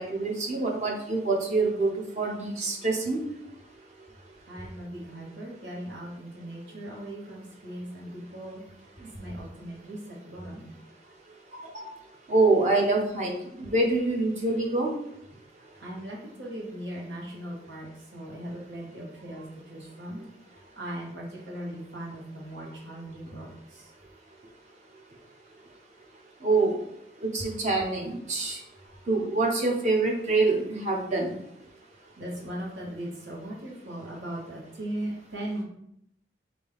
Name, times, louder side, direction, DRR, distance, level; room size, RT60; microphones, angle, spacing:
voice 1, 0.0-1.9 2.2-3.2 11.5-11.9 12.3-15.0 26.4-26.7 27.2-28.6 29.1-31.3, right 3 dB, 40° right, 0 dB, 0.8 m, -25 dB
voice 2, 4.5-8.6 9.0-10.7 11.0-11.1 15.7-20.2 20.5-23.9 32.2-35.6, right 1 dB, 90° right, -3 dB, 1.3 m, -39 dB
5.1 x 2.6 x 3.5 m, 0.75 s
head